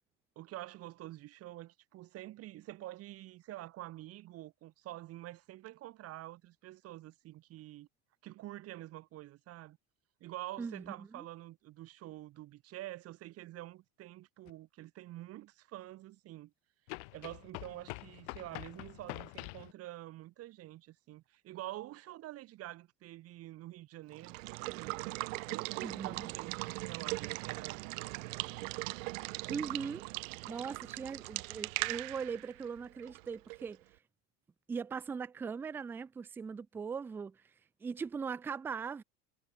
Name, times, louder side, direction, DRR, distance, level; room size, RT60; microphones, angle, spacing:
voice 1, 0.4-7.9 8.2-9.8 10.2-16.5 17.1-25.0 25.5-28.6, right 15 dB, 40° right, 2.9 m, -47 dB
voice 2, 10.6-11.3 25.8-26.3 29.5-30.1 30.5-33.8 34.7-37.4 37.8-39.0, right 5 dB, 5° right, 0.3 m, -40 dB
sound 1, 14.5-14.6 16.9-19.7, left 33 dB, 65° left, 0.6 m, -45 dB
Water / Water tap faucet / Liquid, 24.1-33.8, right 24 dB, 85° right, 1.1 m, -40 dB
cardioid pair, 165°, 38 cm